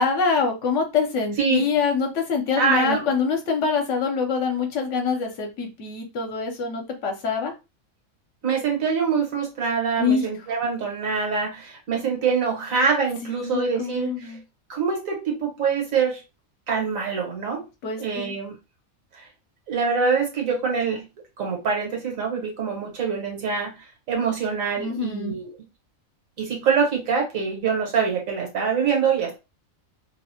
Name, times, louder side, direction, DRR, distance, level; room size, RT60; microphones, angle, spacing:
voice 1, 0.0-7.5 10.0-10.3 13.2-14.4 17.8-18.3 24.8-25.4, left 5 dB, 65° left, 3 dB, 1.0 m, -25 dB
voice 2, 2.6-3.0 8.4-14.4 14.7-16.2 16.7-17.6 18.0-18.5 19.2-19.3 19.7-21.0 21.4-25.5 26.4-29.4, right 5 dB, 80° right, 0 dB, 1.5 m, -24 dB
2.9 x 2.0 x 2.8 m, 0.26 s
omnidirectional pair, 1.4 m